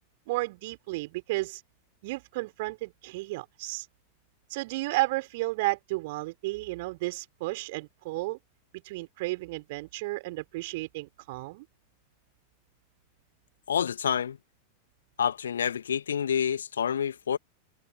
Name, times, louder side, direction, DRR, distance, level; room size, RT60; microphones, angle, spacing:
voice 1, 0.3-1.6 2.0-3.9 4.5-8.4 8.7-11.6, right 21 dB, 50° right, 4.6 m, -33 dB
voice 2, 13.7-14.4 15.2-17.4, left 8 dB, 65° left, 2.3 m, -28 dB
figure-of-eight pair, 90°, 0 cm